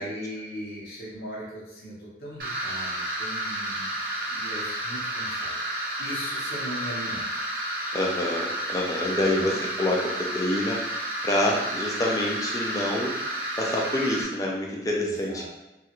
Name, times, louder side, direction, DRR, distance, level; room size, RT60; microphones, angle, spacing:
voice 1, 0.0-3.9 4.3-7.2 9.1-9.5 15.0-15.5, equal, 60° left, -7 dB, 0.9 m, -39 dB
sound 1, 2.4-14.2, right 1 dB, 50° right, 0.6 m, -31 dB
voice 2, 7.9-15.5, left 1 dB, 20° left, -1 dB, 0.4 m, -27 dB
3.0 x 2.4 x 2.9 m, 0.98 s
head